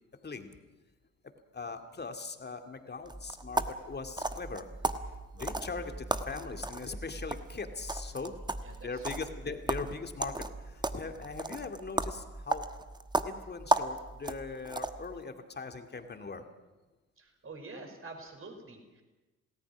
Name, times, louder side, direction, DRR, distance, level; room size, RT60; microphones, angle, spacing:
voice 1, 0.2-0.6 1.5-4.7 5.0-8.4 8.8-12.7 13.2-16.5, left 4 dB, 25° left, 6 dB, 2.3 m, -40 dB
sound 1, 3.1-15.2, right 2 dB, 10° right, 1.2 m, -35 dB
voice 2, 8.6-9.0 17.2-19.0, right 3 dB, 30° right, 4 dB, 5.2 m, -47 dB
27.5 x 18.5 x 6.1 m, 1.2 s
figure-of-eight pair, 50°, 42 cm